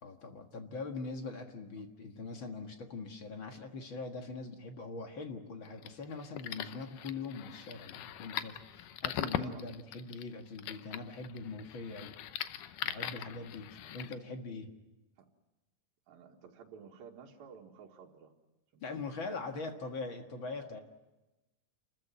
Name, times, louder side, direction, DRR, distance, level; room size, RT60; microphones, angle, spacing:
voice 1, 0.0-14.7 18.8-20.8, left 3 dB, 45° left, 5 dB, 1.9 m, -42 dB
sound 1, 5.6-14.1, left 12 dB, 75° left, 2.3 m, -41 dB
voice 2, 9.2-9.7 10.1-10.2 13.8-14.1 15.2-15.3 16.1-18.3 18.7-19.3, right 7 dB, 90° right, 0 dB, 3.5 m, -53 dB
29.0 x 14.5 x 9.2 m, 1.0 s
omnidirectional pair, 4.0 m